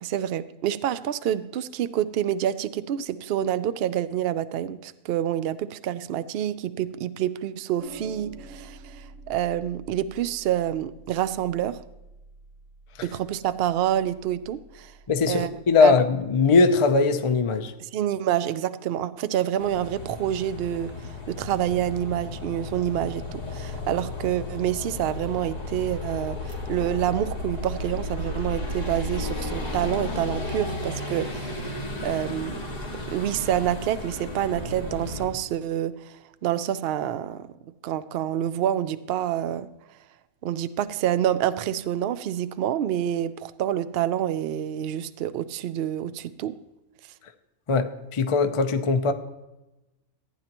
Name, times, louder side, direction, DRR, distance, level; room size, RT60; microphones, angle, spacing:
voice 1, 0.0-11.8 13.0-14.9 15.3-15.5 15.8-16.0 17.8-31.5 32.0-32.6 33.1-37.5 37.8-39.7 40.4-46.6, right 11 dB, 85° right, 0.5 m, -27 dB
sound 1, 7.8-16.3, right 2 dB, 55° right, 4.4 m, -48 dB
voice 2, 15.1-17.7 47.7-49.1, left 4 dB, 55° left, 0.3 m, -20 dB
sound 2, 19.6-35.3, left 2 dB, 25° left, 1.9 m, -34 dB
15.5 x 9.2 x 3.0 m
omnidirectional pair, 1.6 m